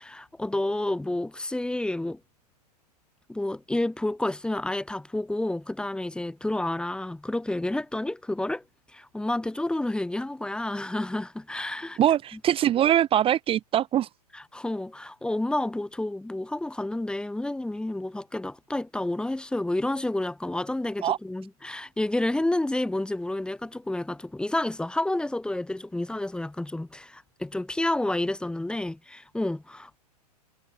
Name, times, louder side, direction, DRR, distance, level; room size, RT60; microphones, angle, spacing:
voice 1, 0.0-2.2 3.3-8.6 8.9-12.0 14.3-30.0, left 1 dB, 5° left, 3.1 m, -30 dB
voice 2, 12.0-14.1 21.0-21.2, right 11 dB, 25° right, 2.4 m, -22 dB
figure-of-eight pair, 105°, 21 cm